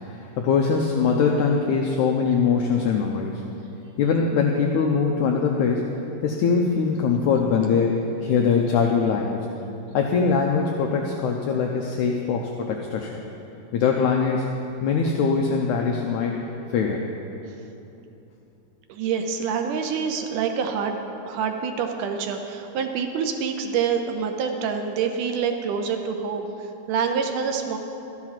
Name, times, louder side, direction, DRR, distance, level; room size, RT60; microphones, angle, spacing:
voice 1, 0.1-3.4 4.0-5.9 6.2-7.9 8.2-9.5 9.9-13.2 13.7-14.5 14.8-16.4 16.7-17.1, left 5 dB, 75° left, 1 dB, 1.8 m, -22 dB
voice 2, 18.9-26.5 26.9-27.8, right 6 dB, 75° right, 5 dB, 2.0 m, -26 dB
13.0 x 11.0 x 5.9 m, 2.9 s
omnidirectional pair, 4.2 m